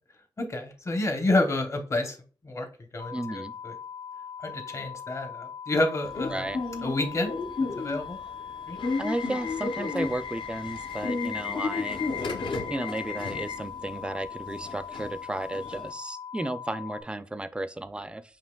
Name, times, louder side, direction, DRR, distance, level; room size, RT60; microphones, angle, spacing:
voice 1, 0.4-2.2 2.4-2.7 2.9-3.7 4.4-6.4 6.8-7.3 7.8-8.2 8.7-8.8, left 2 dB, 35° left, 0.8 m, -29 dB
sound 1, 3.0-17.0, left 7 dB, 85° left, 1.3 m, -41 dB
voice 2, 3.1-3.5 6.3-6.6 9.0-12.0 12.7-18.2, right 1 dB, 10° right, 0.3 m, -34 dB
Subway metro underground / Alarm, 6.1-15.9, left 4 dB, 65° left, 0.7 m, -33 dB
7.3 x 2.8 x 2.3 m
wide cardioid pair, 100°, 9 cm